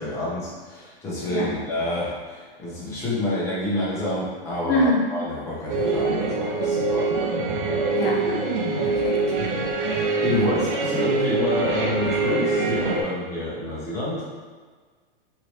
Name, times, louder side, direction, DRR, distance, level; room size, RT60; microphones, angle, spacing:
voice 1, 0.0-7.1 9.9-14.3, left 1 dB, 10° left, -8 dB, 0.6 m, -28 dB
voice 2, 4.6-5.0 7.9-8.4 8.8-9.4 10.3-10.6, left 1 dB, 85° left, 0 dB, 0.8 m, -25 dB
sound 1, 5.7-13.0, right 3 dB, 60° right, 0.6 m, -24 dB
3.0 x 2.8 x 3.1 m, 1.5 s
supercardioid pair, 165°, 29 cm